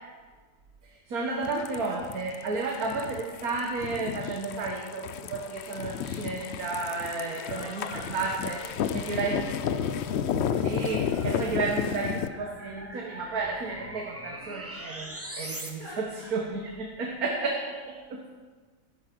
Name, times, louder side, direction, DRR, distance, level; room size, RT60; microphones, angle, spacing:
voice 1, 0.8-8.6 8.9-9.5 10.5-18.3, right 3 dB, 60° right, 0 dB, 1.8 m, -32 dB
sound 1, 1.4-12.3, left 8 dB, 70° left, 0.6 m, -32 dB
voice 2, 7.4-9.2 15.8-16.3 18.2-18.3, left 1 dB, 35° left, -12 dB, 4.7 m, -45 dB
sound 2, 9.4-15.7, right 1 dB, 10° right, 1.1 m, -41 dB
13.5 x 11.0 x 6.0 m, 1.5 s
omnidirectional pair, 1.8 m